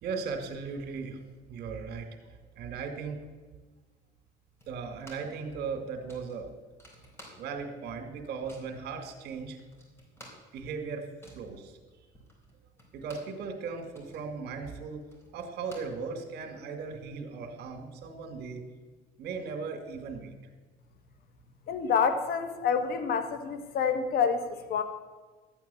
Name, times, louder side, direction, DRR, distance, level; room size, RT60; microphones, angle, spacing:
voice 1, 0.0-1.2 1.5-2.1 2.6-3.2 4.7-6.5 7.4-9.6 10.5-11.1 11.3-11.8 12.9-15.1 15.3-18.7 19.2-20.3, right 5 dB, 75° right, 7 dB, 2.3 m, -37 dB
sound 1, 4.6-5.4 5.7-5.8 6.1-7.8 8.0-8.8 9.3-9.4 9.6-13.4 13.7-16.5, equal, 15° left, 4.3 m, -54 dB
voice 2, 21.7-24.8, left 6 dB, 65° left, 9 dB, 1.6 m, -28 dB
13.0 x 9.0 x 7.0 m, 1.3 s
cardioid pair, 110°, 17 cm